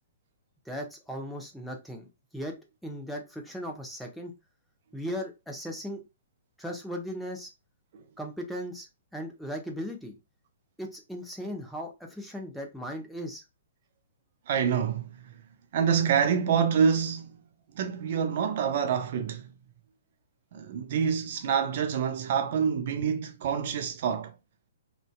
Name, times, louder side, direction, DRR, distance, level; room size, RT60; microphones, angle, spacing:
voice 1, 0.7-2.1 2.3-2.6 2.8-4.3 4.9-6.0 6.6-7.5 8.2-8.9 9.1-10.2 10.8-13.4, equal, ahead, 0.6 m, -37 dB
voice 2, 14.5-15.1 15.7-17.3 17.8-19.5 20.5-24.3, right 7 dB, 50° right, 0.3 m, -26 dB
2.5 x 2.2 x 2.2 m
figure-of-eight pair, 120°, 0 cm